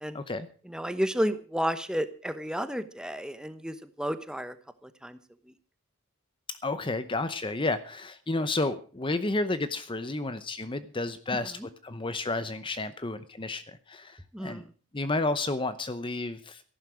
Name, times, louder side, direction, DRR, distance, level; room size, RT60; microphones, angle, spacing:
voice 1, 0.1-0.5 6.6-14.6 14.9-16.6, left 2 dB, 25° left, 12 dB, 0.7 m, -31 dB
voice 2, 0.7-4.6 4.8-5.2 14.3-14.7, equal, 5° right, 11 dB, 1.0 m, -32 dB
14.0 x 11.5 x 6.2 m, 0.40 s
head